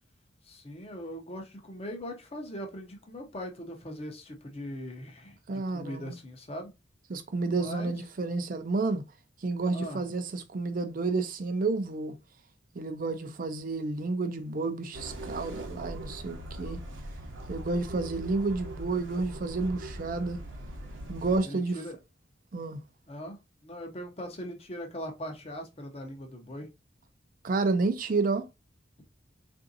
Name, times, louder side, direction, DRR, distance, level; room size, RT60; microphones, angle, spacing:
voice 1, 0.4-6.7 7.5-7.9 9.7-10.0 21.4-22.0 23.1-26.7, equal, 30° left, 0.7 m, -40 dB
voice 2, 5.5-6.2 7.1-9.0 9.4-12.1 12.7-16.8 17.5-20.4 21.1-21.8 22.5-22.8 27.4-28.5, right 3 dB, 45° right, 0.5 m, -30 dB
sound 1, 14.9-21.4, right 1 dB, 80° right, 0.8 m, -41 dB
3.6 x 2.6 x 2.6 m
head